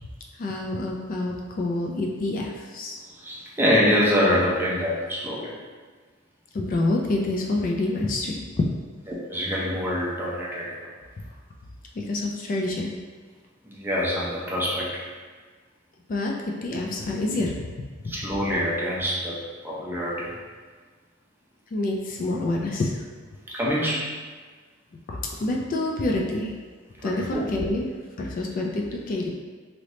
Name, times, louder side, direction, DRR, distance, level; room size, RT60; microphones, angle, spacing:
voice 1, 0.4-3.0 6.5-8.7 12.0-12.9 16.1-17.7 18.3-18.4 21.7-23.0 25.1-26.5 27.0-27.9 28.2-29.3, left 2 dB, 45° left, 0 dB, 0.3 m, -27 dB
voice 2, 3.2-5.5 9.1-10.8 13.6-15.0 18.0-19.4 19.6-20.3 23.5-24.1 27.0-27.4, equal, 10° right, -5 dB, 0.5 m, -25 dB
3.2 x 2.9 x 2.6 m, 1.5 s
head